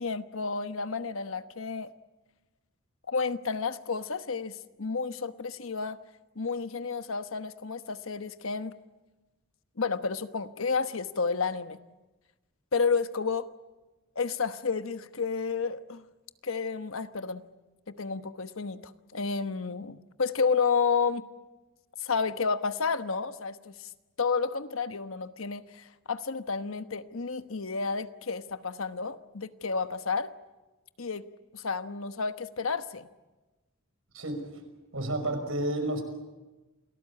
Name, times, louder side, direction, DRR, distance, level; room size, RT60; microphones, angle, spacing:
voice 1, 0.0-1.9 3.1-6.0 6.3-8.7 9.8-11.8 12.7-13.5 14.1-16.0 16.4-17.4 17.9-21.3 22.0-23.9 24.2-30.3 31.0-31.2 31.5-33.1, left 5 dB, 80° left, 10 dB, 1.1 m, -31 dB
voice 2, 34.1-34.6 34.9-36.0, right 1 dB, 80° right, 6 dB, 5.7 m, -31 dB
28.5 x 18.5 x 8.7 m, 1.1 s
head